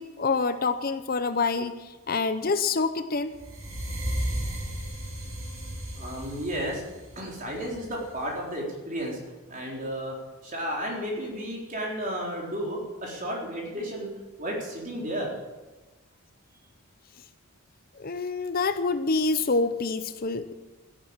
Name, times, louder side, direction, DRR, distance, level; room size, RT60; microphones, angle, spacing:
voice 1, 0.0-3.3 18.0-20.5, left 4 dB, 40° left, 10 dB, 0.7 m, -27 dB
sound 1, 3.3-8.4, equal, 65° right, 6.7 m, -35 dB
voice 2, 5.9-6.8 7.2-9.2 9.5-10.1 10.4-14.1 14.4-15.3, equal, 35° right, -2 dB, 4.1 m, -33 dB
13.5 x 11.0 x 8.8 m, 1.2 s
head